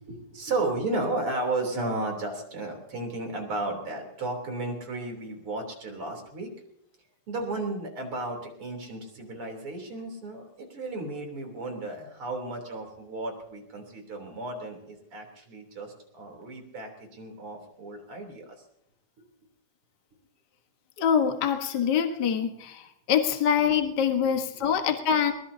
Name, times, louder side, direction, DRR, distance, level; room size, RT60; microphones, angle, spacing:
voice 1, 0.0-6.5 7.3-18.5, right 2 dB, 40° right, 3 dB, 4.0 m, -34 dB
voice 2, 21.0-22.8 23.1-25.3, left 8 dB, 60° left, 4 dB, 1.1 m, -24 dB
22.0 x 20.0 x 2.8 m, 0.77 s
omnidirectional pair, 4.1 m